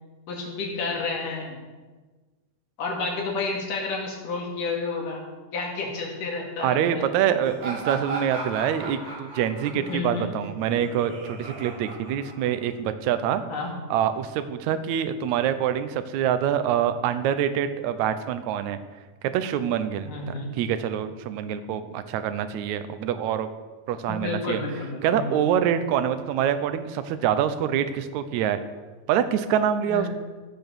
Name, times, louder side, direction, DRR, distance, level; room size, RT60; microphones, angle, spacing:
voice 1, 0.3-1.6 2.8-5.3 5.5-7.0 9.7-10.3 13.5-13.7 20.0-20.6 24.1-25.4 29.9-30.1, left 3 dB, 90° left, 0 dB, 3.8 m, -30 dB
voice 2, 6.6-13.4 13.9-18.8 19.3-20.2 20.6-23.5 23.9-24.6 25.0-28.6 29.1-30.1, right 9 dB, 75° right, 10 dB, 2.0 m, -25 dB
Laughter, 7.4-12.8, right 3 dB, 50° right, 6.1 m, -36 dB
16.0 x 6.2 x 7.0 m, 1.3 s
omnidirectional pair, 3.6 m